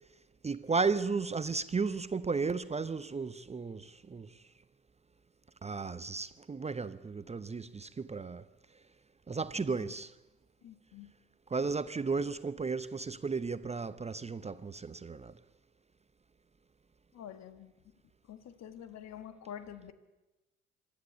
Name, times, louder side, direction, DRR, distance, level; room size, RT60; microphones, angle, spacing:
voice 1, 0.4-4.3 5.6-8.4 9.3-10.1 11.5-15.3, right 4 dB, 20° right, 0.7 m, -34 dB
voice 2, 9.5-9.9 10.6-11.1 17.1-17.7 18.3-19.9, left 9 dB, 55° left, 1.7 m, -47 dB
26.0 x 12.0 x 8.2 m
hypercardioid pair, 55°, 33 cm